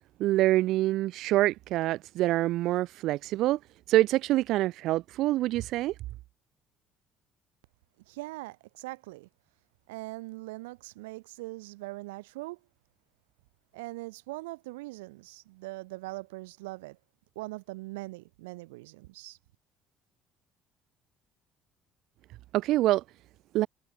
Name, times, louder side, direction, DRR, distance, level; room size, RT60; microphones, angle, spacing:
voice 1, 0.2-3.6 3.9-5.9 22.5-23.0 23.5-23.7, right 16 dB, 70° right, 2.8 m, -25 dB
voice 2, 8.1-9.3 9.9-12.6 13.7-17.0 17.4-19.4, right 22 dB, 85° right, 4.2 m, -41 dB
hypercardioid pair, 65°, 0 cm